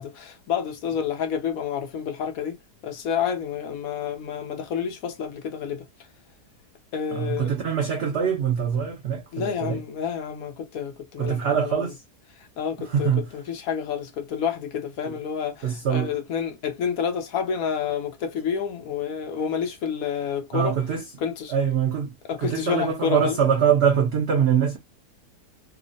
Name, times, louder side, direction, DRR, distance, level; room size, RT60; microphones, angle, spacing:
voice 1, 0.0-2.6 2.8-5.9 6.9-7.5 9.3-11.9 12.4-20.8 21.2-21.5 22.3-23.4, left 7 dB, 70° left, 1.0 m, -29 dB
voice 2, 7.1-9.8 11.2-12.0 12.8-13.3 15.0-15.1 15.6-16.1 20.5-21.0 21.5-22.1 22.4-24.8, right 7 dB, 90° right, 0.5 m, -23 dB
2.9 x 2.0 x 2.4 m
omnidirectional pair, 1.7 m